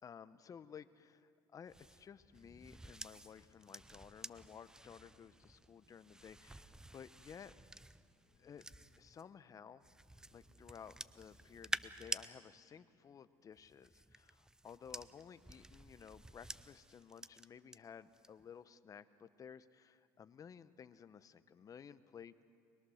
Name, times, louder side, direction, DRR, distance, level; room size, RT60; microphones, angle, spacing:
voice 1, 0.0-7.6 8.4-8.7 9.0-9.9 10.3-22.3, left 7 dB, 40° left, 13 dB, 0.9 m, -55 dB
sound 1, 1.7-9.2 9.8-12.3 13.5-17.8 18.1-18.5, right 1 dB, 5° right, 0.6 m, -50 dB
sound 2, 3.3-13.3, left 5 dB, 60° left, 4.5 m, -76 dB
23.0 x 21.5 x 6.5 m, 2.2 s
supercardioid pair, 95°, 9 cm